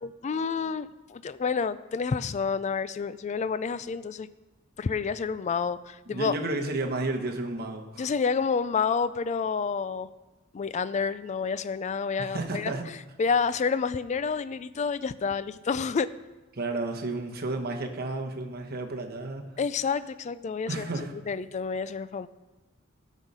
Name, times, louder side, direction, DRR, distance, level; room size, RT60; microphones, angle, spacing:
voice 1, 0.0-4.3 4.8-6.3 8.0-10.1 10.5-12.7 13.2-16.1 19.6-20.9 21.3-22.3, left 5 dB, 35° left, 15 dB, 0.3 m, -29 dB
voice 2, 6.1-8.1 12.2-12.9 16.5-19.5 20.7-21.1, right 2 dB, 50° right, 3 dB, 1.2 m, -32 dB
12.5 x 6.4 x 5.5 m, 1.1 s
head